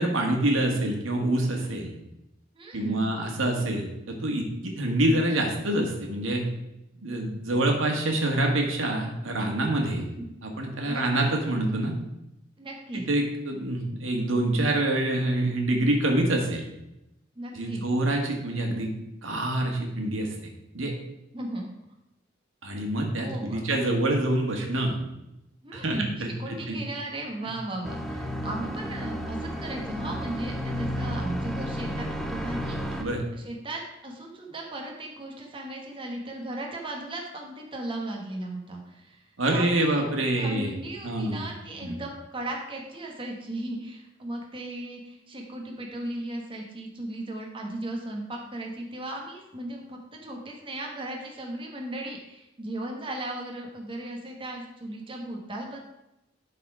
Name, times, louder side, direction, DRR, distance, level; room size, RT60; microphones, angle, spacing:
voice 1, 0.0-1.9 2.7-6.4 7.0-10.0 10.4-11.9 12.9-16.6 17.5-18.9 19.2-20.3 20.7-20.9 22.6-25.0 25.7-26.8 33.0-33.2 39.4-40.7 41.0-41.5 41.8-42.0, right 1 dB, 85° right, 1 dB, 1.6 m, -26 dB
voice 2, 2.5-3.2 10.0-10.3 10.9-11.3 12.6-13.0 17.3-17.8 21.3-21.7 23.2-23.6 25.6-33.1 33.3-40.0 40.4-55.8, right 1 dB, 25° right, 0 dB, 1.2 m, -36 dB
sound 1, 27.8-33.0, equal, ahead, 0.7 m, -32 dB
11.5 x 4.2 x 4.8 m, 0.90 s
head